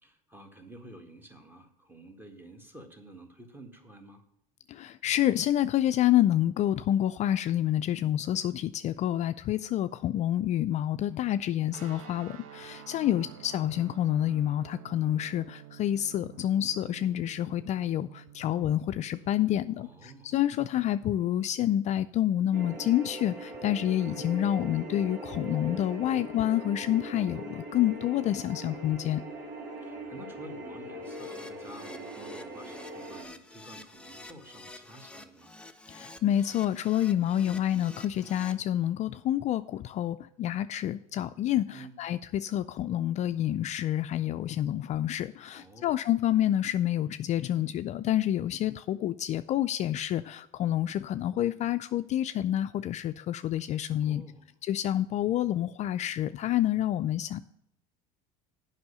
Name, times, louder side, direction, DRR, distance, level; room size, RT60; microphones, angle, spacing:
voice 1, 0.0-4.2 13.0-13.4 19.8-20.3 29.8-35.5 41.7-42.0 45.5-46.0 54.0-54.5, right 1 dB, 10° right, 6 dB, 1.7 m, -50 dB
voice 2, 4.7-29.2 35.9-54.2 54.6-57.4, left 12 dB, 45° left, 11 dB, 0.4 m, -28 dB
sound 1, 11.7-22.0, right 11 dB, 80° right, 1.0 m, -51 dB
sound 2, 22.5-33.2, right 1 dB, 65° right, 2.0 m, -41 dB
Keyboard (musical), 31.0-38.5, left 2 dB, 5° left, 0.8 m, -49 dB
7.8 x 5.6 x 6.7 m, 0.80 s
supercardioid pair, 90°, 17 cm